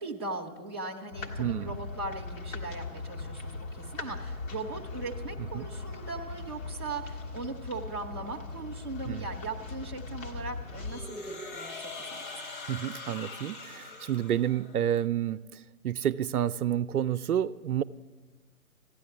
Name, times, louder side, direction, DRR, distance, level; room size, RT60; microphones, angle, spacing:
voice 1, 0.0-12.3, right 3 dB, 20° right, 0.5 m, -39 dB
sound 1, 1.1-11.0, left 3 dB, 60° left, 1.8 m, -39 dB
voice 2, 1.4-1.7 5.5-5.7 9.1-9.3 12.7-17.8, right 10 dB, 75° right, 0.5 m, -30 dB
sound 2, 10.8-14.9, left 3 dB, 35° left, 1.2 m, -42 dB
14.5 x 9.9 x 7.0 m
figure-of-eight pair, 145°, 45 cm